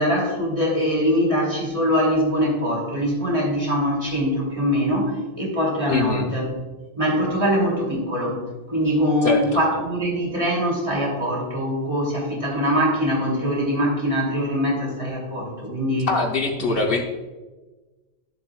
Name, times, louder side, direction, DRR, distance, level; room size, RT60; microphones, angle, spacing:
voice 1, 0.0-6.4 6.9-8.4 8.7-16.1 16.7-16.8, equal, 30° right, -3 dB, 3.0 m, -23 dB
voice 2, 5.9-6.3 9.2-9.4 16.1-17.0, left 3 dB, 65° left, 2 dB, 1.1 m, -22 dB
12.0 x 7.4 x 2.4 m, 1.2 s
omnidirectional pair, 1.0 m